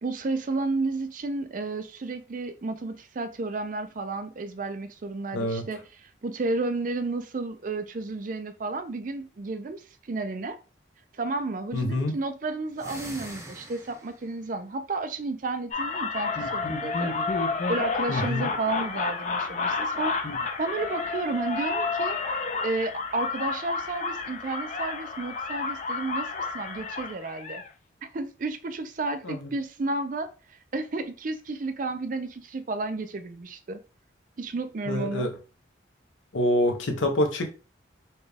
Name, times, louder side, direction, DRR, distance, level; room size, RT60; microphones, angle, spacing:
voice 1, 0.0-10.6 11.1-17.1 17.7-20.2 20.6-22.2 22.6-27.6 28.0-33.8 34.4-35.3, right 3 dB, 40° right, 0.4 m, -32 dB
voice 2, 5.3-5.6 11.7-12.2 18.1-18.5 29.2-29.5 34.9-35.3 36.3-37.5, left 1 dB, 80° left, 0.9 m, -26 dB
sound 1, 12.7-14.3, right 1 dB, 15° right, 0.7 m, -42 dB
sound 2, 15.7-27.7, left 4 dB, 40° left, 0.5 m, -30 dB
4.2 x 2.3 x 3.3 m
head